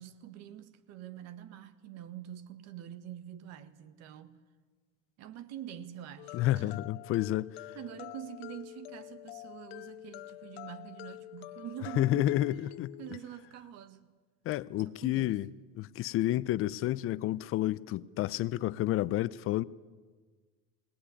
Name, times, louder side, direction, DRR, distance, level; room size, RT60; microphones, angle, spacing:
voice 1, 0.0-4.4 5.2-6.8 7.7-12.4 12.6-12.7 13.0-14.1 14.8-15.4, right 11 dB, 60° right, 1.7 m, -45 dB
sound 1, 6.2-13.2, left 18 dB, 90° left, 0.8 m, -47 dB
voice 2, 6.3-7.6 12.0-12.9 14.5-15.5 15.8-19.6, left 14 dB, 45° left, 0.6 m, -30 dB
22.0 x 18.5 x 9.9 m
supercardioid pair, 125°, 30 cm